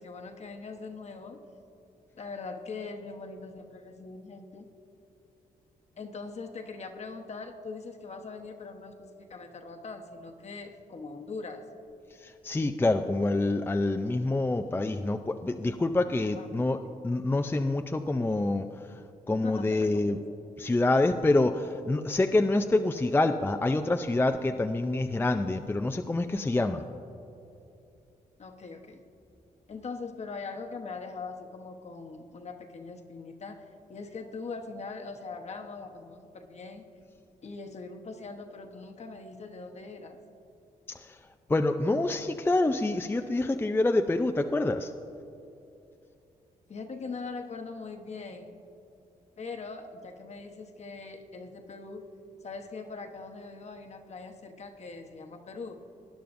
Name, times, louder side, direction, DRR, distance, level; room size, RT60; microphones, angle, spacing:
voice 1, 0.0-1.4 2.1-4.7 6.0-11.6 16.4-16.9 19.4-20.2 28.4-29.0 29.7-33.6 33.9-36.8 37.4-40.2 46.7-48.5 49.4-52.1 52.4-55.8, left 4 dB, 50° left, 4 dB, 1.1 m, -41 dB
voice 2, 12.2-16.8 17.0-18.7 19.3-20.2 20.6-26.8 41.5-44.9, left 2 dB, 15° left, 6 dB, 0.4 m, -26 dB
19.5 x 10.5 x 2.6 m, 2.7 s
cardioid pair, 70°, 15 cm